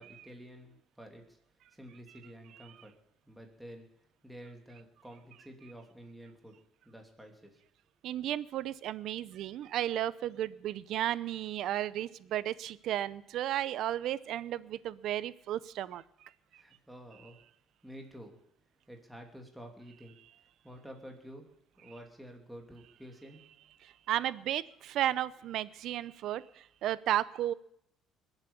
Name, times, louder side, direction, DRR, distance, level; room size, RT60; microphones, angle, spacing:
voice 1, 0.0-1.4 1.7-2.9 3.3-3.9 4.2-6.5 6.8-7.6 16.5-17.4 17.8-18.4 18.9-20.2 20.6-21.5 21.8-23.5, equal, 5° right, 2 dB, 2.8 m, -50 dB
voice 2, 8.0-16.3 23.8-27.5, right 12 dB, 65° right, 18 dB, 0.6 m, -34 dB
21.0 x 8.2 x 7.1 m, 0.74 s
cardioid pair, 105°, 0 cm